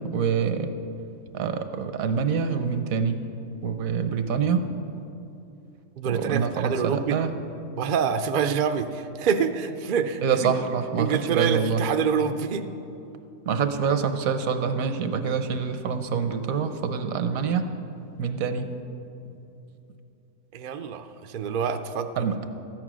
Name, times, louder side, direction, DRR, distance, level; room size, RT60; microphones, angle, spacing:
voice 1, 0.1-0.7 1.3-3.2 3.6-4.6 6.0-7.3 10.2-11.8 13.5-17.6 18.2-18.7 22.2-22.4, right 6 dB, 75° right, 8 dB, 1.2 m, -26 dB
voice 2, 6.0-7.2 7.8-10.5 11.0-12.6 20.5-22.3, right 6 dB, 55° right, 8 dB, 0.5 m, -26 dB
13.5 x 9.2 x 6.2 m, 2.8 s
omnidirectional pair, 1.5 m